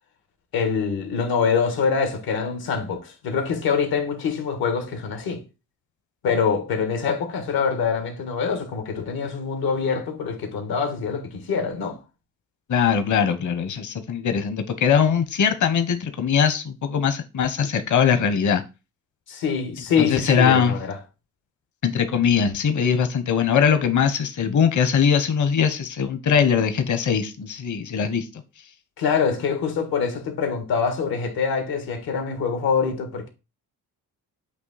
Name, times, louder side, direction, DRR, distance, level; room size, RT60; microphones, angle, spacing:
voice 1, 0.5-5.4 6.2-12.0 19.3-21.0 29.0-33.3, left 6 dB, 85° left, 1.7 m, -24 dB
voice 2, 12.7-18.6 20.0-20.7 21.8-28.3, left 7 dB, 55° left, 1.0 m, -21 dB
8.2 x 2.9 x 4.1 m
cardioid pair, 70°, 36 cm